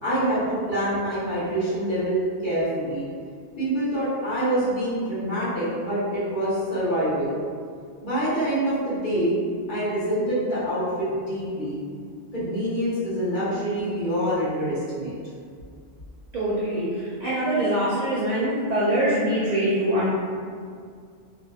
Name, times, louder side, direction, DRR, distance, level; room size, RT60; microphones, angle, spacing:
voice 1, 0.0-3.1 3.6-7.3 8.0-9.4 9.7-11.8 12.3-15.1, right 1 dB, 45° left, -12 dB, 1.2 m, -26 dB
voice 2, 16.3-20.1, right 1 dB, 55° right, -8 dB, 0.4 m, -24 dB
2.8 x 2.5 x 2.3 m, 2.1 s
omnidirectional pair, 1.2 m